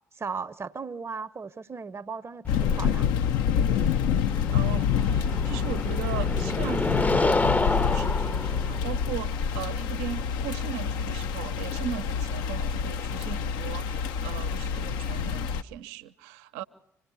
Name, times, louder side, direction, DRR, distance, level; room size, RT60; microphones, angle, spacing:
voice 1, 0.2-3.1, right 5 dB, 35° right, 0.9 m, -36 dB
sound 1, 2.4-11.3, left 3 dB, 20° left, 0.8 m, -30 dB
sound 2, 2.5-15.6, left 7 dB, 65° left, 0.7 m, -27 dB
voice 2, 4.5-16.6, right 11 dB, 70° right, 0.7 m, -38 dB
26.0 x 18.0 x 6.9 m
figure-of-eight pair, 45°, 8 cm